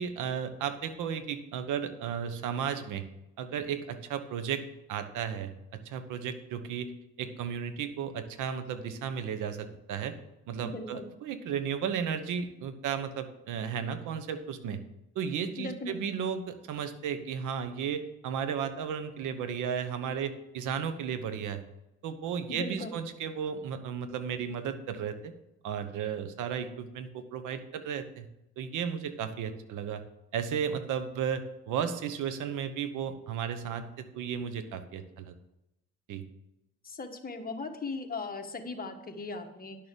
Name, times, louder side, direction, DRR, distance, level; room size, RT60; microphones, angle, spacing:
voice 1, 0.0-3.0 3.4-4.6 4.9-6.9 7.2-10.2 10.5-14.8 15.1-21.6 22.0-25.3 25.6-28.3 28.6-30.0 30.3-35.3 36.1-36.2, right 7 dB, 90° right, 10 dB, 1.1 m, -34 dB
voice 2, 10.6-11.0 15.6-16.0 22.5-22.9 36.8-39.8, left 3 dB, 30° left, 4 dB, 1.5 m, -38 dB
10.5 x 6.7 x 5.3 m, 0.87 s
cardioid pair, 90°, 30 cm